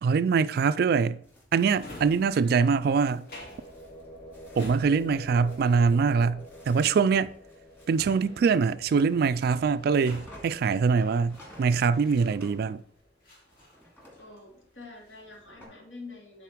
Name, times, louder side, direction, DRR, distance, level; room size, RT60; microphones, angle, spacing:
voice 1, 0.0-1.2 1.5-3.3 4.6-7.3 7.9-12.8, right 5 dB, 55° right, 0.3 m, -24 dB
sound 1, 1.2-13.1 13.5-15.6, equal, 15° left, 2.3 m, -55 dB
Drawer open or close, 1.5-12.8 13.2-14.5 14.8-15.4, left 1 dB, 55° left, 2.2 m, -50 dB
sound 2, 3.0-12.8, equal, 35° left, 1.7 m, -49 dB
voice 2, 14.1-16.4, left 3 dB, 70° left, 2.7 m, -46 dB
9.2 x 4.2 x 4.6 m
head